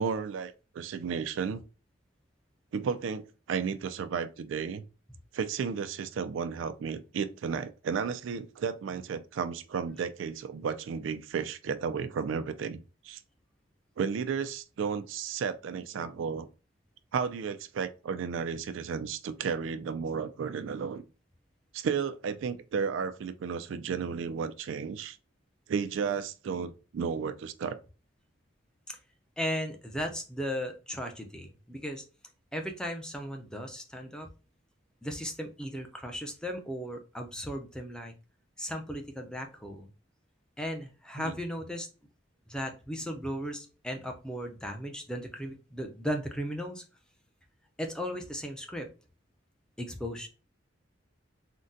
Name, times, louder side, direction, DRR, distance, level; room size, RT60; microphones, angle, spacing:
voice 1, 0.0-1.6 2.7-4.8 5.3-13.2 14.0-16.5 17.1-21.0 21.7-25.2 25.7-27.8 41.2-41.4, right 6 dB, 80° right, 0.3 m, -33 dB
voice 2, 29.4-32.0 32.5-34.3 35.0-38.1 38.6-39.9 40.6-41.9 42.5-46.8 47.8-48.9 49.8-50.3, equal, 5° left, 0.4 m, -36 dB
3.7 x 2.1 x 2.6 m
head